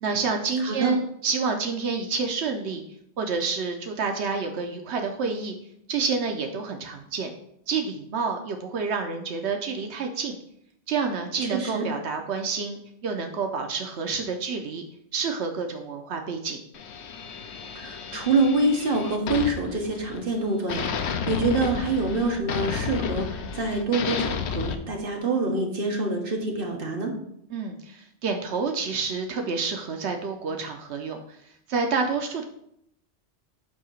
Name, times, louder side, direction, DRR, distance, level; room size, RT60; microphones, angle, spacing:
voice 1, 0.0-2.8 3.2-5.6 5.9-7.3 7.7-10.3 10.9-14.8 15.1-16.6 27.5-31.2 31.7-32.4, right 4 dB, 85° right, 4 dB, 1.0 m, -28 dB
voice 2, 11.5-11.8 17.7-23.3 23.5-27.1, right 2 dB, 55° right, 2 dB, 1.3 m, -26 dB
sound 1, 16.7-20.4 20.7-24.7, left 6 dB, 80° left, 0.9 m, -32 dB
8.4 x 2.8 x 6.2 m, 0.73 s
omnidirectional pair, 1.1 m